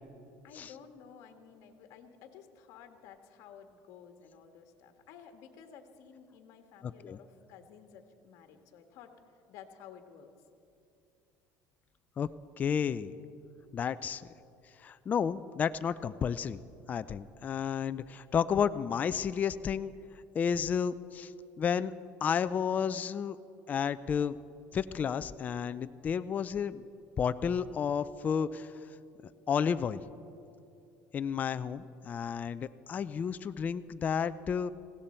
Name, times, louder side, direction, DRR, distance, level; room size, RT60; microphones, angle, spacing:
voice 1, 0.4-9.1 9.5-10.3, left 7 dB, 60° left, 6 dB, 1.5 m, -53 dB
voice 2, 6.8-7.2 12.2-12.3 12.6-13.1 13.7-14.2 14.8-16.6 16.9-19.9 20.3-21.3 21.6-21.9 22.2-23.4 23.7-24.4 24.7-26.8 27.2-28.7 29.5-30.0 31.1-34.7, left 7 dB, 25° left, 12 dB, 0.4 m, -31 dB
20.0 x 16.5 x 4.4 m, 2.6 s
cardioid pair, 145°, 6 cm